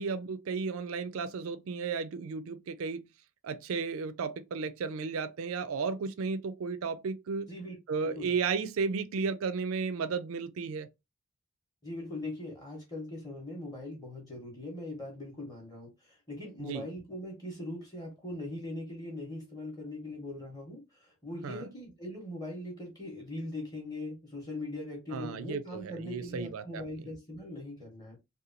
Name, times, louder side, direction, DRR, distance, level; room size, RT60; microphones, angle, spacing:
voice 1, 0.0-3.0 3.4-7.5 7.9-10.9 16.6-16.8 21.4-21.7 25.1-26.8, right 5 dB, 70° right, 0.4 m, -34 dB
voice 2, 8.0-8.3 11.8-28.2, left 1 dB, 20° left, 0.7 m, -41 dB
2.8 x 2.2 x 2.5 m
head